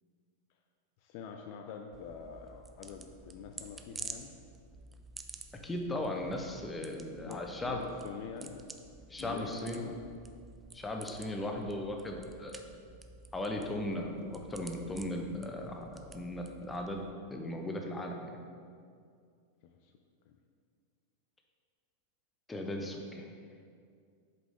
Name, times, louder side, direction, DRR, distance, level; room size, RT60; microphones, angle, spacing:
voice 1, 1.0-4.3 7.2-8.6 9.2-10.0 19.8-19.9 20.3-20.4, left 6 dB, 45° left, 4 dB, 0.4 m, -45 dB
sound 1, 1.9-17.1, right 3 dB, 15° right, 0.4 m, -51 dB
voice 2, 5.6-7.8 9.1-9.8 10.7-12.6 13.3-18.4 22.5-23.3, left 1 dB, 10° left, 2 dB, 0.8 m, -37 dB
8.0 x 5.1 x 3.7 m, 2.2 s
figure-of-eight pair, 90°, 0 cm